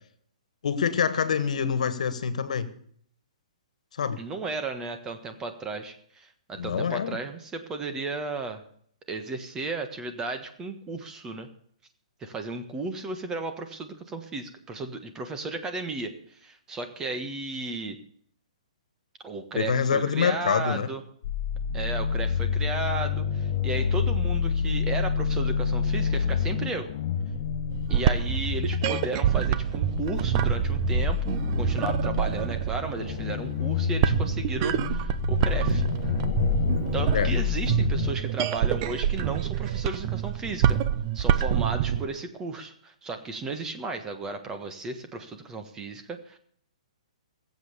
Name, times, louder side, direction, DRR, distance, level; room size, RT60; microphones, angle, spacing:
voice 1, 0.6-2.7 4.0-4.2 6.6-7.2 19.5-20.9 37.1-37.3, left 7 dB, 70° left, 13 dB, 1.6 m, -26 dB
voice 2, 4.2-8.6 9.1-11.5 12.2-18.0 19.2-21.0 21.7-26.9 27.9-35.8 36.9-40.8 41.1-46.4, right 3 dB, 15° right, 7 dB, 1.5 m, -34 dB
sound 1, 21.2-38.1, left 6 dB, 50° left, 2.3 m, -28 dB
sound 2, 27.7-42.1, right 9 dB, 35° right, 0.8 m, -27 dB
18.5 x 7.9 x 6.9 m, 0.63 s
hypercardioid pair, 150°, 4 cm